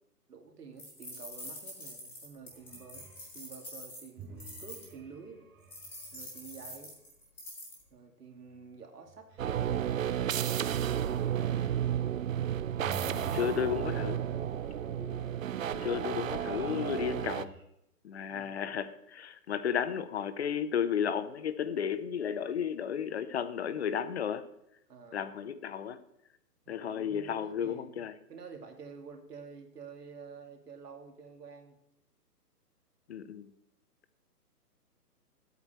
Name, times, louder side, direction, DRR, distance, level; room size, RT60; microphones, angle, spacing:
voice 1, 0.3-3.1 3.3-5.4 6.1-7.0 7.9-9.3 9.7-11.6 13.0-13.6 13.8-14.5 18.3-18.6 24.9-25.2 26.7-31.8, right 5 dB, 70° right, 3 dB, 2.3 m, -49 dB
sound 1, 0.8-4.9 5.7-7.8, left 1 dB, 5° left, 1.5 m, -46 dB
sound 2, 2.5-3.4 4.2-6.8 8.5-8.8 9.1-12.1 12.8-17.6, right 3 dB, 15° right, 1.7 m, -48 dB
sound 3, 9.4-17.5, right 10 dB, 55° right, 0.6 m, -32 dB
voice 2, 13.3-14.2 15.7-17.5 18.0-24.4 25.1-26.0 26.7-28.1 33.1-33.5, left 8 dB, 40° left, 13 dB, 0.8 m, -33 dB
12.5 x 8.2 x 4.3 m, 0.81 s
hypercardioid pair, 150°, 48 cm